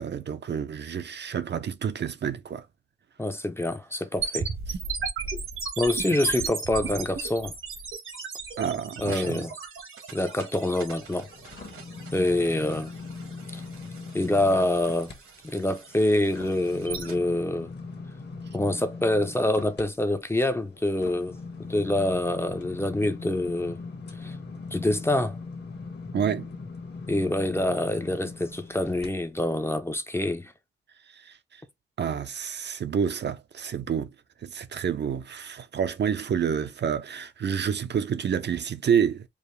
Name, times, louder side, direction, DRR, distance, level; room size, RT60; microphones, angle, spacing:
voice 1, 0.0-2.7 8.6-9.4 26.1-26.5 31.2-31.4 32.0-34.1 34.4-39.3, right 7 dB, 55° right, 0.5 m, -28 dB
voice 2, 3.2-4.5 5.8-7.5 9.0-9.5 10.1-11.3 12.1-12.9 13.5-13.6 14.1-15.1 15.4-17.7 18.5-21.3 21.6-23.8 24.2-24.4 24.7-25.4 27.1-30.5, left 1 dB, 10° left, 0.5 m, -26 dB
sound 1, 4.2-17.2, right 5 dB, 75° right, 1.2 m, -36 dB
sound 2, 10.5-15.2 15.6-29.1 29.6-29.7, left 4 dB, 55° left, 1.1 m, -41 dB
4.8 x 2.5 x 3.2 m
wide cardioid pair, 170°, 21 cm